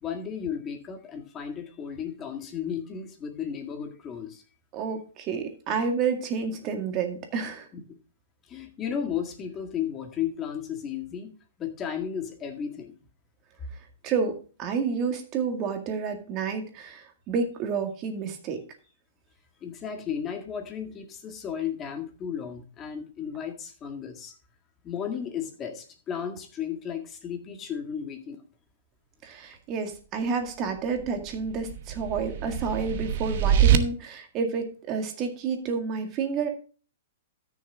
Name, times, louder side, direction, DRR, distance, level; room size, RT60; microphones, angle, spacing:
voice 1, 0.0-4.4 8.5-11.3 11.6-12.9 19.6-24.3 24.8-28.4, left 8 dB, 20° left, 5 dB, 1.9 m, -34 dB
voice 2, 4.7-7.7 14.0-18.6 29.2-36.5, right 5 dB, 30° right, 5 dB, 2.0 m, -30 dB
sound 1, 31.0-33.8, right 9 dB, 55° right, 1.1 m, -24 dB
13.5 x 6.5 x 3.6 m, 0.37 s
hypercardioid pair, 145°, 0 cm